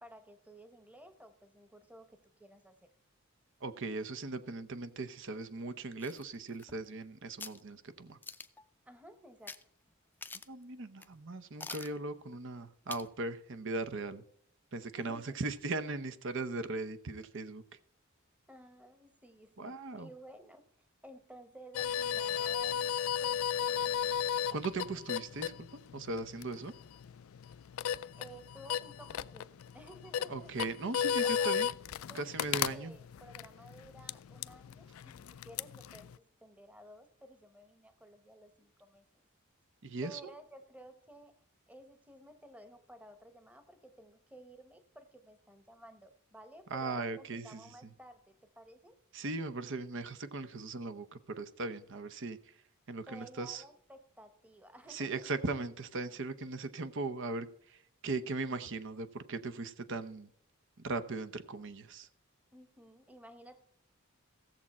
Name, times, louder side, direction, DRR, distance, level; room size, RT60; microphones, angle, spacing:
voice 1, 0.0-2.7 8.9-9.6 15.0-15.4 18.5-24.4 28.1-30.5 31.2-31.6 32.1-39.3 40.0-41.4 41.7-49.0 53.1-55.3 62.5-63.6, right 1 dB, 5° right, 8 dB, 1.0 m, -54 dB
voice 2, 3.6-8.2 10.5-14.2 14.7-17.6 19.6-20.1 24.5-25.5 25.9-26.7 30.3-31.7 32.1-32.9 39.8-40.3 46.7-47.6 49.1-52.5 52.9-53.6 54.9-60.3 60.8-62.1, right 3 dB, 60° right, 11 dB, 0.8 m, -38 dB
sound 1, 6.0-7.0 7.4-7.6 8.2-8.7 9.5-9.6 9.9-10.0 10.2-10.6 11.0-11.1 11.6-12.0 12.9-13.1 13.5-13.6, left 3 dB, 10° left, 0.5 m, -46 dB
sound 2, 21.7-36.2, left 8 dB, 80° left, 0.4 m, -35 dB
16.0 x 7.4 x 4.2 m, 0.67 s
head